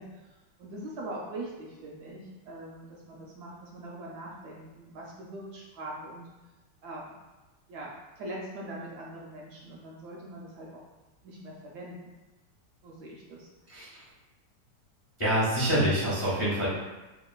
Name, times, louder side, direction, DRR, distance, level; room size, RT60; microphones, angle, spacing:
voice 1, 0.0-6.2 6.8-7.1 7.7-7.9 8.2-10.8 11.2-12.2 12.8-13.5, right 1 dB, 75° right, -3 dB, 1.0 m, -42 dB
voice 2, 13.7-14.0 15.2-16.7, equal, 25° left, -9 dB, 0.6 m, -26 dB
3.0 x 2.4 x 2.2 m, 1.1 s
omnidirectional pair, 1.9 m